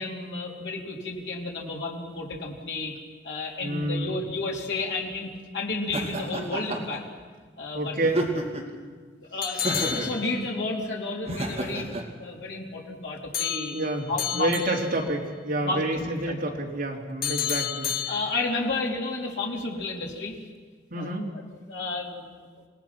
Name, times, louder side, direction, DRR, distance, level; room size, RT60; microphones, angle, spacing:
voice 1, 0.0-2.9 3.2-7.0 7.6-7.9 9.2-13.8 14.1-14.5 15.6-16.6 17.6-17.7 18.1-20.4 21.0-22.2, left 3 dB, 75° left, -2 dB, 3.3 m, -32 dB
voice 2, 3.6-4.2 7.7-8.2 9.5-9.6 13.7-18.2 20.9-21.3, right 1 dB, 50° right, -1 dB, 3.2 m, -29 dB
Laughter, 5.9-7.0 8.0-8.8 9.6-10.2 11.3-12.0, right 2 dB, 35° right, 2.5 m, -30 dB
sound 1, 9.4-10.8 13.3-15.1 17.2-18.7, left 9 dB, 55° left, 0.8 m, -31 dB
27.5 x 18.5 x 6.0 m, 1.5 s
head